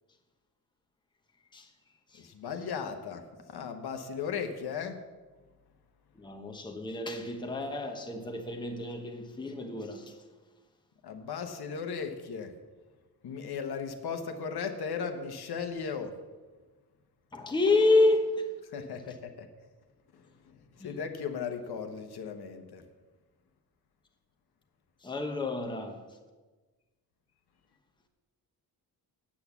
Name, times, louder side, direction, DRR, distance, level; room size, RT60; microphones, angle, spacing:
voice 1, 2.2-3.2 3.5-5.0 11.0-12.5 13.2-16.1 18.7-19.5 20.8-22.8, left 6 dB, 70° left, 1.1 m, -36 dB
voice 2, 6.2-10.1 17.3-18.4 20.8-20.9 25.0-26.0, left 2 dB, 10° left, 0.9 m, -29 dB
8.5 x 8.3 x 7.1 m
wide cardioid pair, 175°, 39 cm